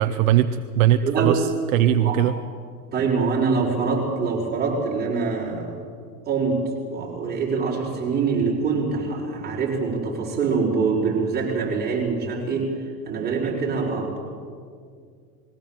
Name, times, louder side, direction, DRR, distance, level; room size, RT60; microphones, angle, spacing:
voice 1, 0.0-2.3, right 11 dB, 55° right, 10 dB, 0.8 m, -20 dB
voice 2, 1.0-1.4 2.0-2.2 2.9-5.8 6.3-6.6 6.9-12.7 13.1-14.2, right 5 dB, 20° right, -3 dB, 5.5 m, -24 dB
21.5 x 16.5 x 7.5 m, 2.2 s
hypercardioid pair, 130°, 48 cm